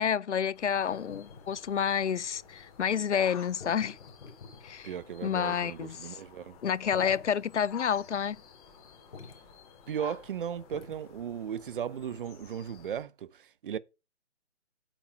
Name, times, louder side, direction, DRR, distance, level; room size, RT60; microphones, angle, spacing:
voice 1, 0.0-4.0 4.6-4.9 5.2-6.2 6.6-8.4, left 8 dB, 80° left, 0.7 m, -29 dB
sound 1, 0.5-13.0, left 8 dB, 30° left, 3.3 m, -51 dB
sound 2, 0.9-12.1, left 4 dB, 55° left, 3.4 m, -51 dB
voice 2, 4.8-6.6 9.9-13.8, right 8 dB, 50° right, 0.8 m, -36 dB
8.7 x 8.4 x 4.5 m
hypercardioid pair, 145°, 35 cm